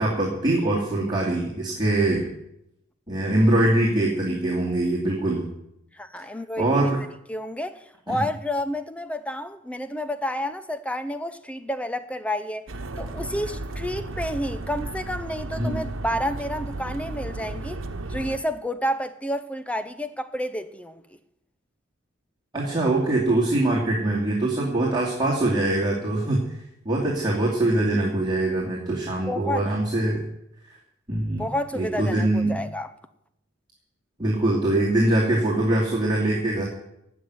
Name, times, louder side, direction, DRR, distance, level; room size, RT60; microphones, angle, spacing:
voice 1, 0.0-2.3 3.1-5.5 6.6-7.0 8.1-8.2 15.6-15.9 22.5-26.6 26.8-30.2 30.7-30.8 31.1-31.5 31.7-32.6 34.2-36.6, right 1 dB, 20° right, 2.6 m, -23 dB
voice 2, 5.9-6.9 7.3-12.7 13.0-17.8 18.1-21.0 29.3-29.6 31.4-32.9, equal, 5° left, 0.7 m, -30 dB
sound 1, 12.7-18.4, right 2 dB, 85° right, 1.1 m, -34 dB
17.0 x 6.3 x 9.6 m
head